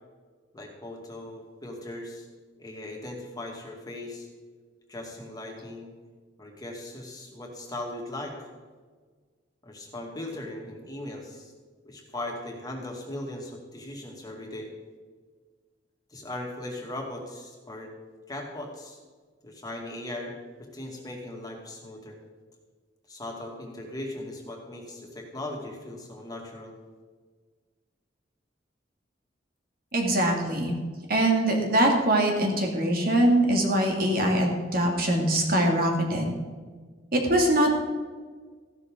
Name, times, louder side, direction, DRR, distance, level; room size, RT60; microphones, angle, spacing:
voice 1, 0.5-2.3 2.6-4.3 4.9-5.9 6.4-8.5 9.6-11.5 11.8-14.7 16.1-17.9 18.3-19.0 19.4-20.3 20.6-22.2 23.1-26.8, left 1 dB, 20° left, 0 dB, 2.3 m, -38 dB
voice 2, 29.9-30.8 31.1-36.3 37.1-37.7, right 1 dB, 55° right, 1 dB, 2.4 m, -23 dB
14.5 x 12.0 x 3.8 m, 1.5 s
head